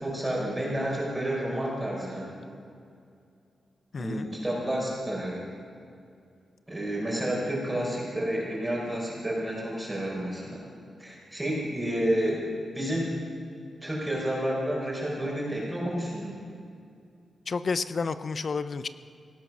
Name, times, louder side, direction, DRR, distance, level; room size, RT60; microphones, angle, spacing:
voice 1, 0.0-2.3 4.0-5.4 6.7-10.6 11.0-12.4 12.7-13.2 13.8-16.3, right 1 dB, 15° right, -4 dB, 4.7 m, -30 dB
voice 2, 3.9-4.3 17.5-18.9, left 4 dB, 50° left, 13 dB, 0.6 m, -30 dB
18.0 x 11.5 x 6.1 m, 2.4 s
cardioid pair, 80°, 0 cm